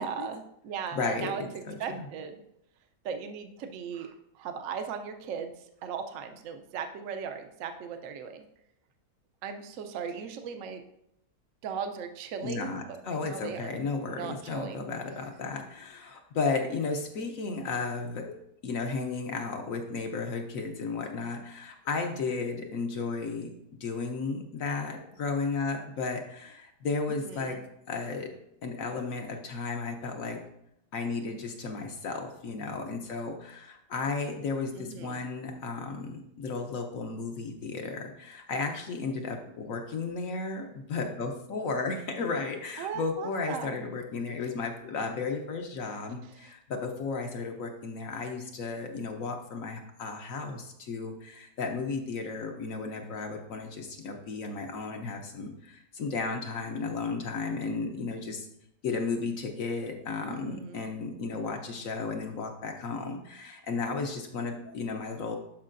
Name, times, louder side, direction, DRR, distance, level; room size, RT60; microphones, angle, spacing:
voice 1, 0.0-1.4 1.8-2.4 3.0-5.5 5.8-8.5 9.4-10.8 11.6-12.7 13.1-13.8 14.0-14.8 27.1-27.6 34.7-35.2 42.8-43.9 60.3-60.9, right 6 dB, 60° right, 7 dB, 0.9 m, -38 dB
voice 2, 0.9-2.1 12.4-18.4 18.6-23.5 23.8-27.6 27.9-28.3 28.6-30.4 30.9-58.5 58.8-65.4, left 4 dB, 60° left, 3 dB, 1.1 m, -34 dB
12.0 x 4.8 x 2.5 m, 0.77 s
omnidirectional pair, 1.7 m